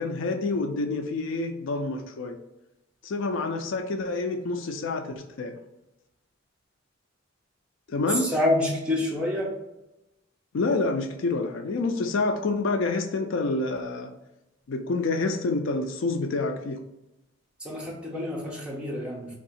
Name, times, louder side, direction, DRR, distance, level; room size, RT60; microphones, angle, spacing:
voice 1, 0.0-2.4 3.0-5.6 7.9-8.3 10.5-14.1 14.7-16.8, left 3 dB, 65° left, 7 dB, 0.4 m, -28 dB
voice 2, 8.1-9.5 17.6-19.4, left 1 dB, 5° right, -3 dB, 0.7 m, -27 dB
3.5 x 2.7 x 4.1 m, 0.94 s
head